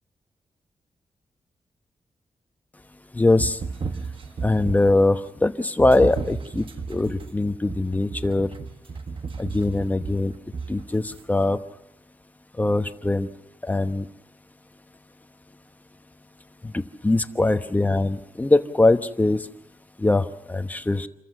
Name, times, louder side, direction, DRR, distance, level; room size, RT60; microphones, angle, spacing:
voice 1, 3.2-3.5 4.4-6.6 6.9-8.5 9.4-10.3 10.7-11.0 11.3-11.6 12.6-13.3 13.7-14.0 17.0-19.4 20.0-20.2 20.5-21.1, left 2 dB, 15° left, 9 dB, 1.0 m, -21 dB
sound 1, 3.3-5.1 5.8-11.2, right 4 dB, 55° right, 1.4 m, -34 dB
28.0 x 14.0 x 7.6 m, 0.85 s
wide cardioid pair, 115°, 10 cm